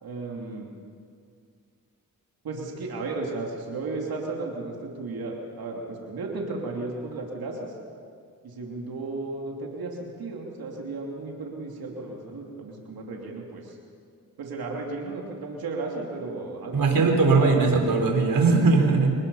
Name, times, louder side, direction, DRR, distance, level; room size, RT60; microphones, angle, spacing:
voice 1, 0.0-0.7 2.4-7.7 8.4-13.8 14.4-17.6, right 3 dB, 85° right, -1 dB, 2.9 m, -34 dB
voice 2, 16.7-19.2, right 4 dB, 70° right, 2 dB, 4.3 m, -20 dB
26.0 x 20.0 x 5.6 m, 2.2 s
cardioid pair, 60°, 35 cm